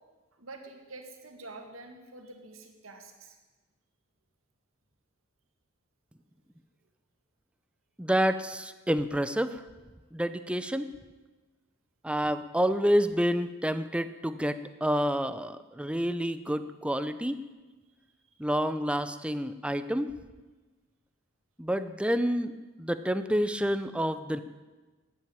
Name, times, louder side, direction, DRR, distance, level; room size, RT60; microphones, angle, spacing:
voice 1, 0.3-3.4 17.9-18.4, right 2 dB, 85° right, 4 dB, 2.2 m, -47 dB
voice 2, 8.0-9.6 10.1-10.9 12.0-17.4 18.4-20.1 21.6-24.4, equal, 5° right, 12 dB, 0.6 m, -28 dB
13.5 x 9.3 x 8.8 m, 1.2 s
head